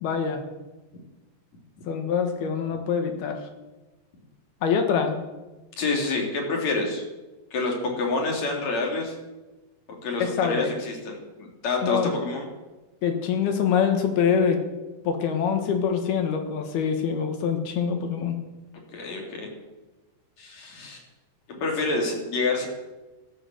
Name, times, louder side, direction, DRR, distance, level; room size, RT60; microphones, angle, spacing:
voice 1, 0.0-0.4 1.9-3.4 4.6-5.2 10.2-10.7 11.8-12.1 13.0-14.6 15.1-18.4, left 7 dB, 70° left, 5 dB, 3.4 m, -25 dB
voice 2, 5.8-7.0 7.5-9.1 10.0-12.5 18.9-19.5 20.4-21.0 21.5-22.7, left 3 dB, 45° left, 0 dB, 4.1 m, -27 dB
14.5 x 12.5 x 7.8 m, 1.1 s
omnidirectional pair, 4.9 m